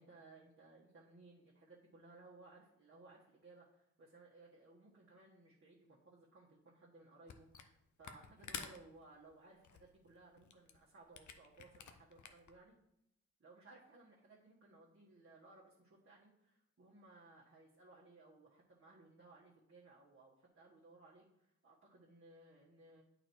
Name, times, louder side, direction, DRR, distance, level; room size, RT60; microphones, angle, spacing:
voice 1, 0.0-12.7 13.4-23.0, right 2 dB, 45° right, -5 dB, 1.5 m, -61 dB
Camera, 7.3-7.7 8.0-12.6, left 7 dB, 75° left, 0.8 m, -51 dB
8.8 x 4.1 x 4.5 m, 0.82 s
cardioid pair, 85°, 30 cm